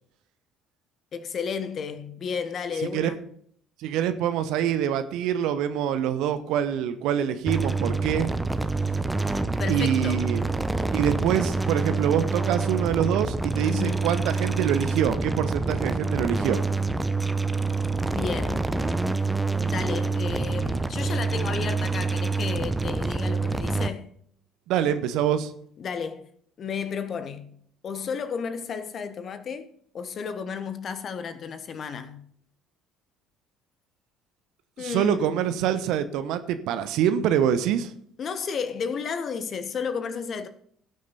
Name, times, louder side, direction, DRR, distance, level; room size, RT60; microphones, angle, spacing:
voice 1, 1.1-3.2 9.6-10.2 13.7-14.2 18.0-18.7 19.6-24.1 25.8-26.3 26.6-27.5 27.8-32.2 34.8-35.4 38.2-40.5, left 6 dB, 45° left, 1.3 m, -33 dB
voice 2, 3.8-8.3 9.7-10.4 10.9-16.6 24.7-25.5 34.8-37.9, right 9 dB, 60° right, 1.0 m, -25 dB
sound 1, 7.5-23.9, right 3 dB, 10° right, 0.9 m, -26 dB
17.5 x 6.5 x 4.1 m
figure-of-eight pair, 55°, 0 cm